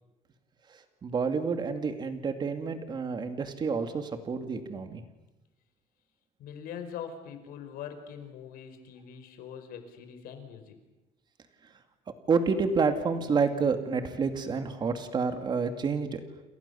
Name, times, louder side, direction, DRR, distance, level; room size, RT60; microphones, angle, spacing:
voice 1, 0.7-5.0 12.3-16.2, right 5 dB, 30° right, 8 dB, 2.4 m, -29 dB
voice 2, 6.4-10.8, left 8 dB, 80° left, 7 dB, 5.0 m, -42 dB
29.0 x 28.0 x 7.1 m, 1.0 s
cardioid pair, 170°, 15 cm